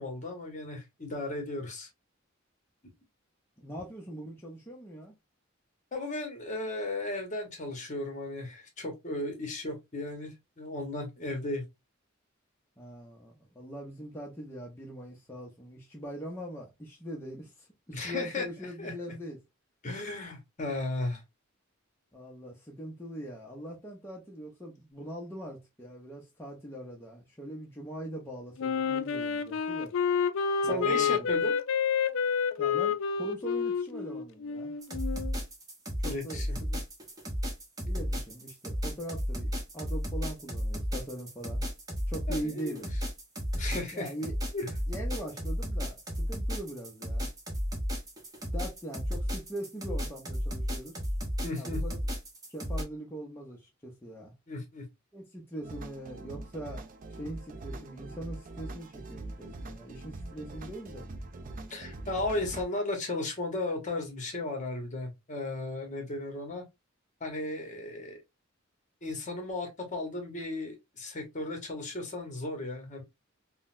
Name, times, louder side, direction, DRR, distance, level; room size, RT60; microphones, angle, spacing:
voice 1, 0.0-1.9 2.8-2.9 5.9-11.6 17.9-18.5 18.8-18.9 19.8-21.2 30.7-31.6 36.0-36.6 42.3-42.9 43.6-44.1 44.5-44.7 51.4-51.8 54.5-54.9 61.7-66.6 67.2-68.2 69.0-73.0, left 2 dB, 40° left, 0.9 m, -35 dB
voice 2, 3.6-5.1 12.8-19.4 22.1-29.9 30.6-31.3 32.6-34.8 36.0-36.8 37.9-41.6 42.1-42.9 43.9-44.3 44.9-47.3 48.5-51.0 51.6-52.0 52.5-54.3 55.1-56.8 57.2-61.1, right 1 dB, 10° left, 0.6 m, -42 dB
Wind instrument woodwind instrument, 28.6-35.4, left 6 dB, 65° left, 0.3 m, -29 dB
sound 1, 34.8-52.8, equal, 20° right, 0.8 m, -33 dB
sound 2, 55.6-62.6, right 2 dB, 40° right, 0.4 m, -43 dB
3.8 x 2.1 x 2.4 m
head